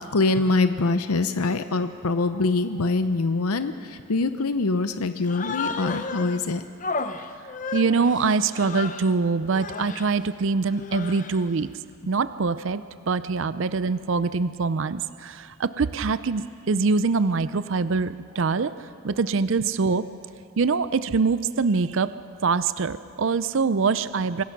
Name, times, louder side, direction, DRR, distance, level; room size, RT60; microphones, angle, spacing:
voice 1, 0.1-6.7 18.5-18.6, left 3 dB, 90° left, 10 dB, 0.7 m, -24 dB
Human voice, 5.2-6.4 6.8-9.1 9.5-10.1 10.7-11.5, left 4 dB, 35° left, 0.7 m, -33 dB
voice 2, 7.7-11.7 12.1-20.1 20.6-22.1 22.4-24.4, right 4 dB, 60° right, 14 dB, 0.5 m, -24 dB
25.5 x 19.0 x 6.0 m, 2.3 s
head